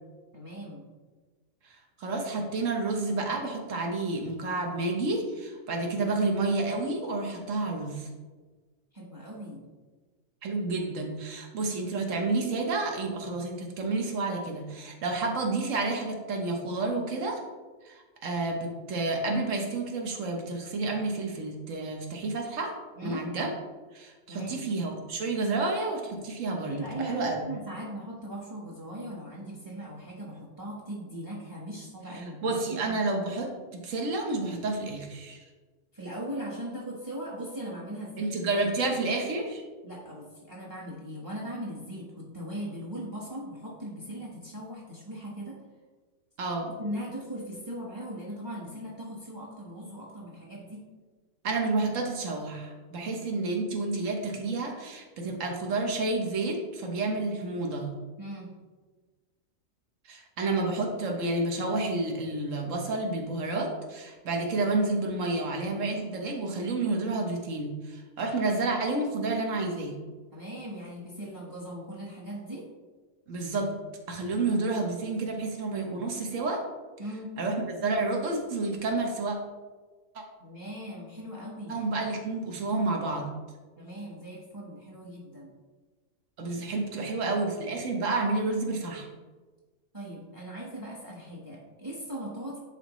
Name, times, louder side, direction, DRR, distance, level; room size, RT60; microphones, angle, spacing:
voice 1, 0.3-0.9 8.9-9.6 23.0-23.3 24.3-24.6 26.7-33.0 35.9-38.3 38.8-38.9 39.8-45.6 46.6-50.9 52.9-53.1 58.2-58.5 70.3-72.7 77.0-77.3 80.4-81.8 83.8-85.5 89.9-92.6, equal, 15° right, -4 dB, 1.1 m, -39 dB
voice 2, 1.6-8.1 10.4-17.4 17.8-22.7 23.0-23.5 23.9-27.4 32.1-35.5 38.2-39.6 46.4-46.7 51.4-57.9 60.1-70.0 73.3-73.7 74.1-76.6 77.4-79.4 80.1-80.2 81.7-83.4 86.4-89.1, right 3 dB, 65° right, 2 dB, 1.4 m, -30 dB
10.5 x 4.3 x 3.1 m, 1.4 s
omnidirectional pair, 1.4 m